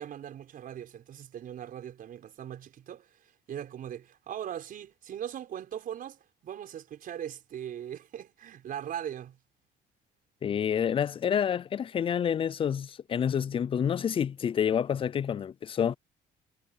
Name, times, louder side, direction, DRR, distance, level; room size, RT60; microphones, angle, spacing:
voice 1, 0.0-3.1 3.5-9.4, right 10 dB, 55° right, 4.9 m, -40 dB
voice 2, 10.4-16.0, left 8 dB, 30° left, 0.4 m, -28 dB
cardioid pair, 110°, 17 cm